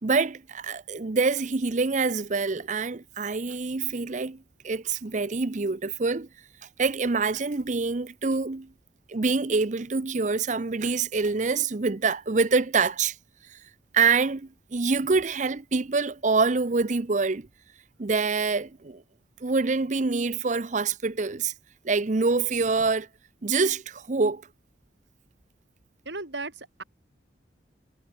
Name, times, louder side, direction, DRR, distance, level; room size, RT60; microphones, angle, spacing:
voice 1, 0.0-6.3 6.8-8.7 9.1-13.2 13.5-13.6 13.9-17.5 18.0-19.0 19.4-21.5 21.8-23.1 23.4-24.4, right 4 dB, 40° right, 0.7 m, -26 dB
voice 2, 26.1-26.8, right 3 dB, 75° right, 4.2 m, -36 dB
head